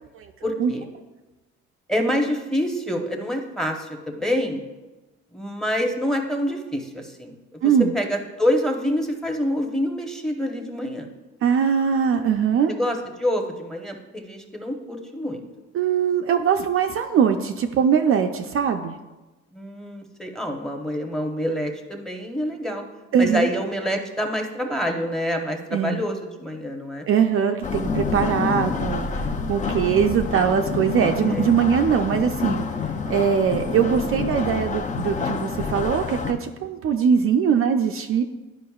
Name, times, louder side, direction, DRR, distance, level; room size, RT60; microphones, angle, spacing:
voice 1, 0.4-0.8 1.9-4.6 5.3-11.1 12.7-15.4 19.5-22.8 23.2-27.1 31.3-31.6, equal, ahead, 3 dB, 0.8 m, -27 dB
voice 2, 7.6-7.9 11.4-12.7 15.7-19.0 23.1-23.5 25.7-26.0 27.1-32.6 33.1-38.2, right 7 dB, 50° right, 5 dB, 0.4 m, -21 dB
sound 1, 27.6-36.3, left 5 dB, 25° left, 0.5 m, -27 dB
11.0 x 5.2 x 2.3 m, 1.1 s
cardioid pair, 115°, 29 cm